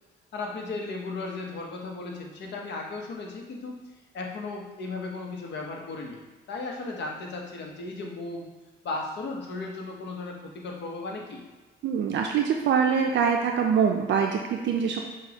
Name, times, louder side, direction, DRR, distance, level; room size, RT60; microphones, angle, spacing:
voice 1, 0.3-3.8 4.1-6.2 6.5-8.5 8.8-11.4, left 3 dB, 60° left, 0 dB, 0.9 m, -35 dB
voice 2, 11.8-15.0, right 6 dB, 65° right, 2 dB, 0.4 m, -24 dB
5.9 x 2.3 x 2.8 m, 1.2 s
cardioid pair, 90°, 20 cm